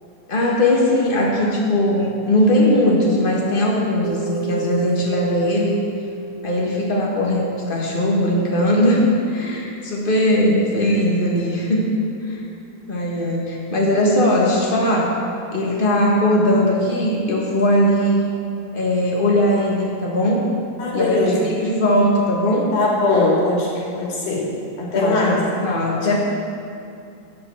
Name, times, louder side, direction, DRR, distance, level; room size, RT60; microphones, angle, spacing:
voice 1, 0.3-5.8 6.4-11.9 12.2-12.5 12.9-15.2 15.5-18.2 18.7-20.4 20.9-22.7 24.9-26.2, left 1 dB, 50° left, -2 dB, 0.6 m, -19 dB
sound 1, 4.0-13.0, right 2 dB, 80° right, 1.5 m, -36 dB
voice 2, 20.8-21.5 22.7-24.5 24.8-25.4 26.1-26.2, left 2 dB, 75° left, -4 dB, 3.8 m, -20 dB
12.0 x 5.5 x 8.5 m, 2.5 s
omnidirectional pair, 3.5 m